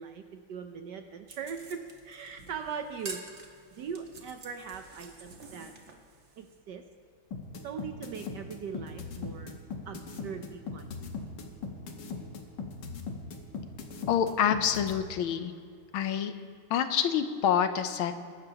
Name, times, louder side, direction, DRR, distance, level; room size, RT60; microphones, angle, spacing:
voice 1, 0.0-3.2 3.7-5.7 6.4-6.8 7.6-9.5 9.9-11.1, right 6 dB, 65° right, 6 dB, 1.1 m, -40 dB
sound 1, 1.3-6.6, right 3 dB, 40° right, 1.2 m, -48 dB
sound 2, 7.3-14.9, left 5 dB, 55° left, 1.7 m, -38 dB
voice 2, 14.1-15.5 15.9-16.3 16.7-18.1, left 8 dB, 75° left, 9 dB, 1.5 m, -27 dB
23.0 x 12.0 x 2.9 m, 2.3 s
omnidirectional pair, 2.4 m